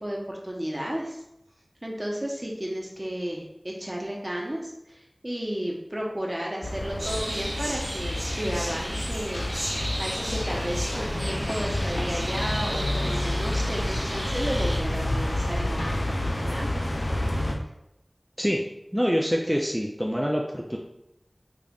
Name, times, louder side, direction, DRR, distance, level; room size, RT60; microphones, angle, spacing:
voice 1, 0.0-1.2 1.8-16.7, equal, 35° right, -2 dB, 0.8 m, -33 dB
sound 1, 6.6-17.5, left 1 dB, 85° left, 0.5 m, -29 dB
sound 2, 7.0-14.8, right 1 dB, 80° right, 1.4 m, -35 dB
voice 2, 18.9-20.8, equal, 5° right, -1 dB, 0.3 m, -25 dB
5.1 x 2.4 x 2.3 m, 0.85 s
wide cardioid pair, 40°, 0 cm